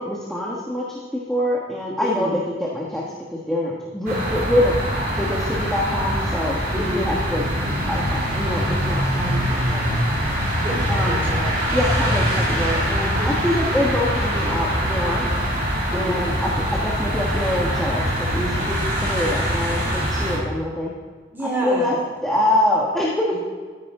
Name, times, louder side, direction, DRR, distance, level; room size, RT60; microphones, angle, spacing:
voice 1, 0.0-3.0 3.3-4.7 5.2-6.6 6.9-7.4 7.7-10.0 10.9-11.2 11.7-15.3 15.9-20.9 21.6-21.9 22.2-23.4, left 1 dB, 5° left, -5 dB, 1.4 m, -25 dB
voice 2, 2.0-2.3 6.7-7.1 10.6-11.6 13.0-13.3 15.9-16.2 21.3-22.0, right 1 dB, 10° right, -3 dB, 3.6 m, -28 dB
sound 1, 4.1-20.4, equal, 50° right, 3.2 m, -23 dB
14.0 x 10.0 x 3.7 m, 1.5 s
head